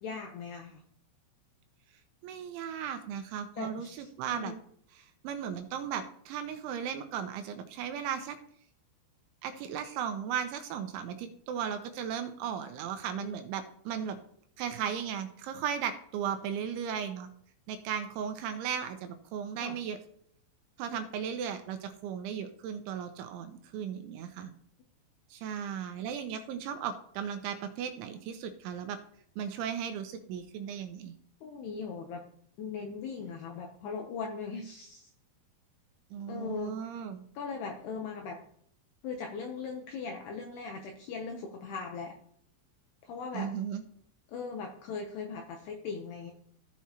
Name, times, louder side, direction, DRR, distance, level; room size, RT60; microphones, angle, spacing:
voice 1, 0.0-0.8 3.6-4.6 13.1-13.4 19.6-19.8 20.9-21.0 31.4-32.3 32.6-35.1 36.3-36.8 37.3-38.4 39.0-42.1 43.0-43.5 44.3-46.3, left 5 dB, 80° left, 2 dB, 2.4 m, -39 dB
voice 2, 2.2-4.5 5.2-8.4 9.4-14.2 14.6-17.3 17.7-20.0 20.8-24.5 25.3-29.0 29.4-31.1 36.1-37.2 43.3-43.8, right 8 dB, 80° right, 7 dB, 2.9 m, -36 dB
14.5 x 5.9 x 2.9 m, 0.65 s
omnidirectional pair, 5.7 m